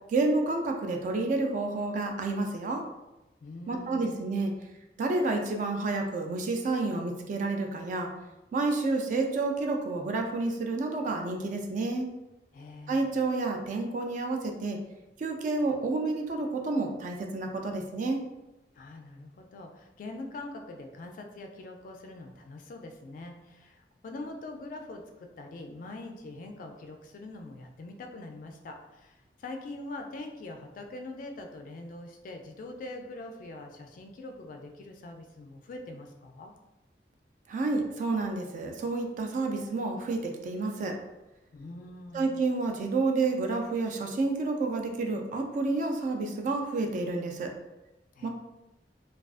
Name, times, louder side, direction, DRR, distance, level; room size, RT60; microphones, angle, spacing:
voice 1, 0.1-2.8 3.7-4.5 5.0-8.1 8.5-12.1 12.9-14.8 15.2-18.2 37.5-41.0 42.1-47.5 48.2-48.3, right 3 dB, 45° right, 3 dB, 0.3 m, -29 dB
voice 2, 3.4-4.2 12.5-13.2 18.7-36.5 41.5-42.4 48.2-48.3, left 2 dB, 50° left, 4 dB, 0.3 m, -43 dB
2.3 x 2.3 x 2.4 m, 0.98 s
head